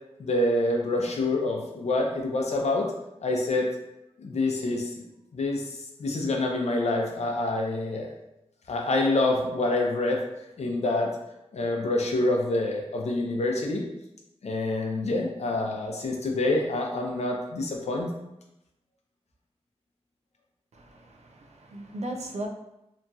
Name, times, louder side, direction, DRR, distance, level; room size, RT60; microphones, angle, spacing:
voice 1, 0.2-2.9 3.2-3.7 4.2-5.0 5.3-8.1 8.7-10.2 10.6-11.2 11.5-13.8 14.4-18.1, left 2 dB, 80° left, 0.5 m, -26 dB
voice 2, 20.7-22.5, right 1 dB, 85° right, 0.4 m, -37 dB
2.9 x 2.6 x 2.3 m
wide cardioid pair, 85°, 11 cm